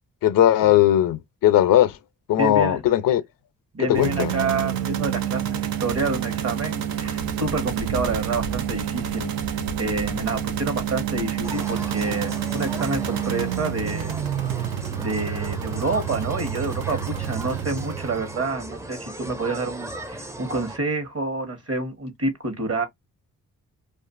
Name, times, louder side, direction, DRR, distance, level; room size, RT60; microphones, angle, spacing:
voice 1, 0.2-1.9 2.3-3.2 3.8-4.3, left 12 dB, 70° left, 0.5 m, -18 dB
voice 2, 2.4-2.8 3.7-9.3 9.8-14.1 15.0-22.9, right 3 dB, 45° right, 1.0 m, -28 dB
sound 1, 4.0-18.5, right 9 dB, 80° right, 0.5 m, -28 dB
sound 2, 11.4-20.8, right 1 dB, 10° right, 0.4 m, -37 dB
2.5 x 2.4 x 2.4 m
cardioid pair, 60°, 35 cm